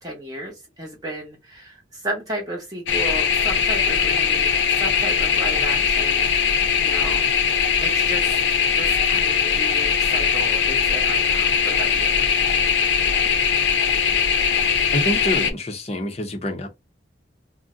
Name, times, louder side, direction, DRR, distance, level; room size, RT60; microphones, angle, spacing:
voice 1, 0.0-7.2 7.8-8.4 8.7-12.2, right 1 dB, 20° right, 0.7 m, -33 dB
sound 1, 2.9-15.5, left 6 dB, 75° left, 0.5 m, -20 dB
voice 2, 14.9-16.7, equal, 35° left, 0.6 m, -26 dB
2.5 x 2.1 x 3.6 m
head